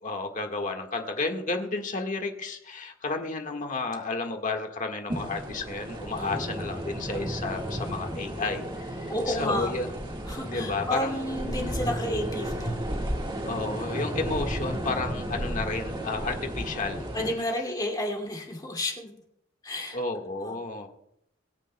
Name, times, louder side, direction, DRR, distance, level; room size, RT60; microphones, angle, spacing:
voice 1, 0.0-9.9 10.4-11.2 13.4-17.1 19.9-20.9, left 3 dB, 40° left, 3 dB, 1.6 m, -32 dB
sound 1, 5.1-17.3, right 1 dB, 25° right, 1.6 m, -33 dB
voice 2, 6.2-6.6 9.1-9.7 10.3-12.8 17.1-19.2 19.6-20.0 20.4-20.6, left 1 dB, 20° left, 0 dB, 2.3 m, -31 dB
23.5 x 10.0 x 2.2 m, 0.75 s
head